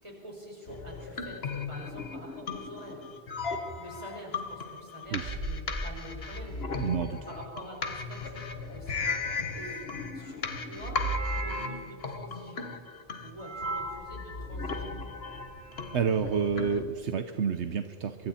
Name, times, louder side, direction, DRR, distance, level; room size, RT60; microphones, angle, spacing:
voice 1, 0.0-3.1 3.8-9.1 9.5-12.6 13.2-14.9, equal, 25° right, -1 dB, 5.4 m, -46 dB
sound 1, 0.7-16.8, left 4 dB, 60° left, 1.6 m, -37 dB
sound 2, 3.4-3.7 5.1-6.7 8.6-9.7 10.8-11.9 13.4-14.0 15.0-15.9, right 2 dB, 55° right, 5.3 m, -37 dB
voice 2, 6.8-7.2 15.9-18.3, right 6 dB, 75° right, 8 dB, 1.2 m, -29 dB
25.0 x 24.5 x 4.4 m, 2.2 s
omnidirectional pair, 1.2 m